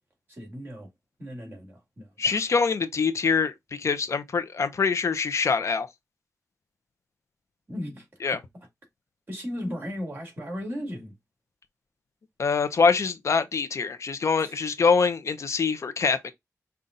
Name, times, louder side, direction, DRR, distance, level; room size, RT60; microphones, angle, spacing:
voice 1, 0.3-0.9 1.2-2.4 7.7-8.4 9.3-11.2 14.4-14.5, equal, 35° right, 2.3 m, -36 dB
voice 2, 2.2-5.9 8.2-8.4 12.4-16.3, left 5 dB, 55° left, 0.6 m, -24 dB
5.5 x 2.4 x 3.8 m
wide cardioid pair, 120°, 6 cm